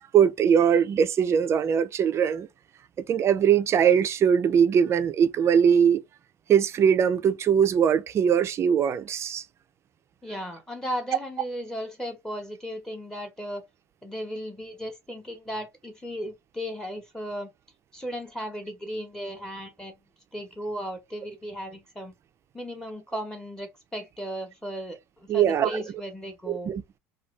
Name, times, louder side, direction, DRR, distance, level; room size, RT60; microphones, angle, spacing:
voice 1, 0.1-2.5 3.0-6.0 6.5-9.4 25.3-25.8 26.5-27.0, right 8 dB, 35° right, 0.4 m, -21 dB
voice 2, 10.2-13.6 14.0-17.5 17.9-19.9 20.3-22.2 22.5-26.7, equal, 10° left, 0.9 m, -36 dB
2.6 x 2.3 x 3.1 m
hypercardioid pair, 85°, 8 cm